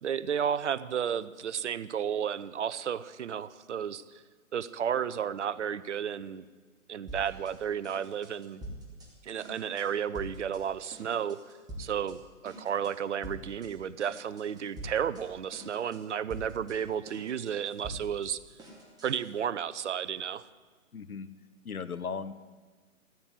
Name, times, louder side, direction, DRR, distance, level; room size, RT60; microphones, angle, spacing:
voice 1, 0.0-4.2 4.5-6.4 6.9-8.6 9.2-11.4 11.8-18.4 19.0-20.5, right 8 dB, 55° right, 16 dB, 0.7 m, -32 dB
sound 1, 7.1-7.6 7.8-9.1 9.4-9.9 10.1-10.6 10.9-12.2 12.4-12.9 13.2-13.7 14.0-15.2 15.5-16.0 16.3-19.3, right 1 dB, 10° right, 2.5 m, -45 dB
voice 2, 20.9-21.3 21.6-22.3, left 5 dB, 85° left, 14 dB, 1.1 m, -36 dB
15.0 x 9.1 x 9.6 m, 1.4 s
figure-of-eight pair, 140°, 42 cm